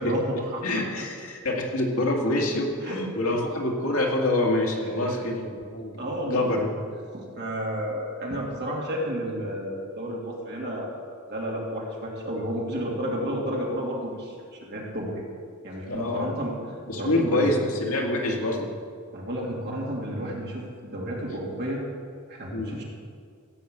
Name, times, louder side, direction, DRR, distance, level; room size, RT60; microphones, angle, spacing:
voice 1, 0.0-0.6 2.8-3.0 5.0-5.2 6.0-6.6 7.1-10.9 11.3-15.2 15.6-16.5 17.0-17.6 19.1-20.6 20.9-21.8 22.3-22.8, equal, 50° right, -3 dB, 2.8 m, -31 dB
voice 2, 0.6-6.7 15.9-16.3 16.9-18.7 22.5-22.8, left 1 dB, 70° left, -1 dB, 2.2 m, -26 dB
15.5 x 5.9 x 8.1 m, 2.1 s
head